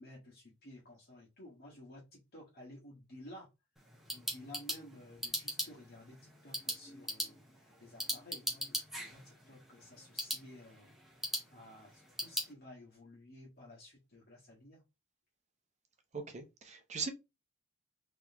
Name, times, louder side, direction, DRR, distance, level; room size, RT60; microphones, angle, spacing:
voice 1, 0.0-3.5 4.1-14.8, left 1 dB, 45° left, 1.4 m, -54 dB
sound 1, 3.8-12.5, equal, ahead, 1.1 m, -41 dB
voice 2, 16.1-17.1, right 5 dB, 35° right, 0.7 m, -40 dB
3.8 x 3.1 x 3.4 m
head